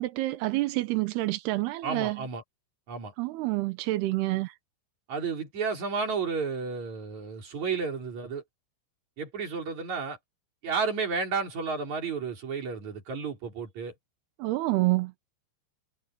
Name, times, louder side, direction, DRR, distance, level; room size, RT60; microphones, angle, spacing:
voice 1, 0.0-2.2 3.2-4.5 14.4-15.1, right 19 dB, 80° right, 2.4 m, -28 dB
voice 2, 1.8-2.4 2.9-3.1 5.1-8.4 9.2-10.2 10.6-13.9, right 5 dB, 40° right, 5.4 m, -32 dB
omnidirectional pair, 5.7 m